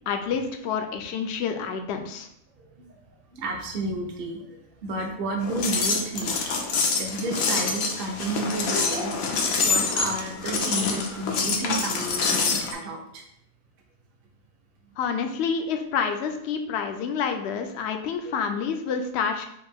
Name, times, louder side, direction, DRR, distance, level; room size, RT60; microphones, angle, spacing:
voice 1, 0.1-2.3 15.0-19.4, left 6 dB, 65° left, 5 dB, 0.7 m, -28 dB
voice 2, 3.3-6.5 7.0-9.2 9.6-13.2, right 2 dB, 50° right, 2 dB, 0.9 m, -31 dB
sound 1, 5.4-12.7, left 4 dB, 85° left, 1.1 m, -26 dB
5.0 x 2.6 x 3.5 m, 0.74 s
omnidirectional pair, 1.4 m